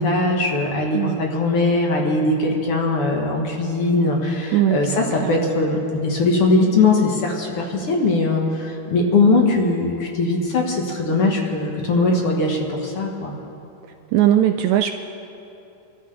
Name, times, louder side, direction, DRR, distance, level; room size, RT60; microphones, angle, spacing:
voice 1, 0.0-13.3, left 2 dB, 55° left, 0 dB, 2.0 m, -20 dB
voice 2, 4.5-5.4 14.1-15.0, right 11 dB, 85° right, 6 dB, 1.6 m, -19 dB
25.5 x 13.5 x 3.3 m, 2.9 s
omnidirectional pair, 3.8 m